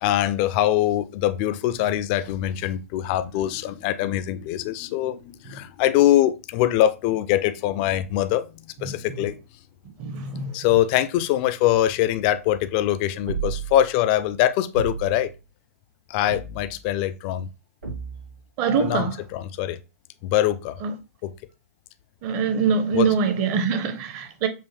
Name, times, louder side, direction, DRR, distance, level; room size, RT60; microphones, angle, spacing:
voice 1, 0.0-8.5 8.8-9.4 10.5-15.3 16.1-17.5 18.8-19.8 20.2-20.8 21.2-21.3 22.9-23.1, left 12 dB, 40° left, 0.3 m, -23 dB
voice 2, 10.0-10.5 18.6-19.1 20.8-20.9 22.2-24.5, right 6 dB, 35° right, 0.8 m, -23 dB
sound 1, 13.3-13.9 14.7-15.3 16.3-16.9 17.8-18.4, right 6 dB, 90° right, 2.4 m, -33 dB
5.4 x 2.1 x 3.2 m
hypercardioid pair, 125°, 8 cm